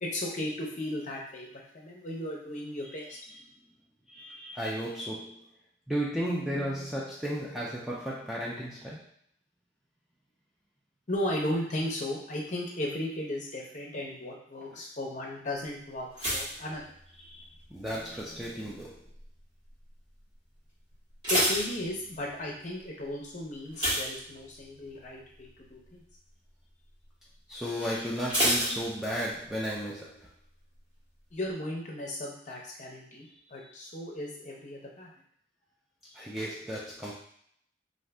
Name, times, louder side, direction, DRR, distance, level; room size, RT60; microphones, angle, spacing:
voice 1, 0.0-3.2 11.1-16.8 21.3-26.0 31.3-35.1, left 1 dB, 35° left, -2 dB, 0.6 m, -35 dB
voice 2, 4.1-5.5 5.9-9.1 17.2-19.0 27.5-30.3 33.6-33.7 36.0-37.1, equal, ahead, -6 dB, 0.3 m, -34 dB
sound 1, 16.1-17.6 17.9-18.4 19.0-19.4 19.7-19.8 20.2-20.3 20.9-22.4 23.7-24.9 25.2-25.5 25.9-26.0 28.3-29.5 29.8-29.9, equal, 25° right, 1.3 m, -30 dB
2.6 x 2.5 x 3.3 m, 0.66 s
head